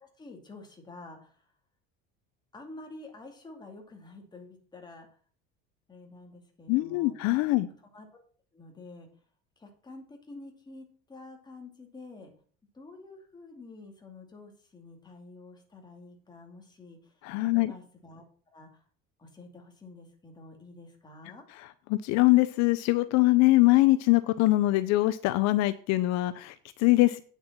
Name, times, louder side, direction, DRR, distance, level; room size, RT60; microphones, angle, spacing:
voice 1, 0.0-1.4 2.5-5.1 5.9-7.1 7.9-8.1 8.5-9.1 9.6-12.3 12.7-17.1 17.4-18.2 18.5-18.8 19.2-21.4, left 2 dB, 15° left, 2 dB, 2.4 m, -48 dB
voice 2, 6.7-7.7 17.2-17.7 21.9-27.2, left 19 dB, 65° left, 13 dB, 0.7 m, -23 dB
9.0 x 7.0 x 5.9 m, 0.44 s
cardioid pair, 155°, 29 cm